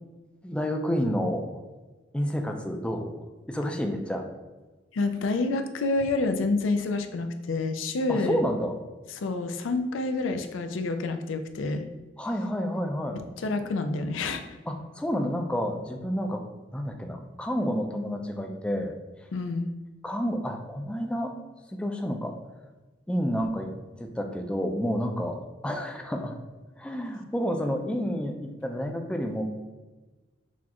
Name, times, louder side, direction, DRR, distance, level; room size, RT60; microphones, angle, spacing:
voice 1, 0.4-1.4 2.1-4.3 8.1-8.7 12.2-13.2 14.7-16.4 16.7-18.9 20.0-21.3 21.7-22.4 23.1-23.7 24.0-26.4 26.8-29.4, equal, 5° left, 3 dB, 0.4 m, -29 dB
voice 2, 4.9-8.4 9.2-11.8 13.4-14.4 19.3-19.7 23.3-23.5, left 3 dB, 85° left, 7 dB, 0.4 m, -28 dB
6.1 x 2.3 x 2.9 m, 1.2 s
head